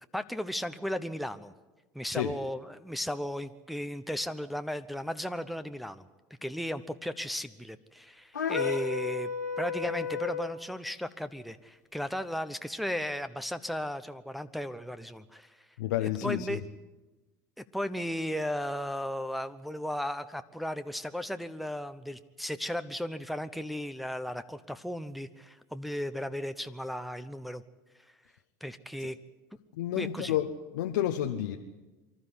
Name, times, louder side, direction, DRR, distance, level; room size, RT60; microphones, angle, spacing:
voice 1, 0.0-1.5 1.9-6.1 6.4-9.3 9.6-15.7 16.0-16.6 17.6-27.6 28.6-29.2 30.0-30.3, equal, ahead, 8 dB, 1.0 m, -35 dB
sound 1, 8.3-10.6, left 5 dB, 90° left, 2.4 m, -32 dB
voice 2, 15.8-16.6 29.0-29.1 29.7-31.6, left 12 dB, 70° left, 4 dB, 1.0 m, -31 dB
24.5 x 13.0 x 9.9 m, 1.1 s
hypercardioid pair, 75°, 10 cm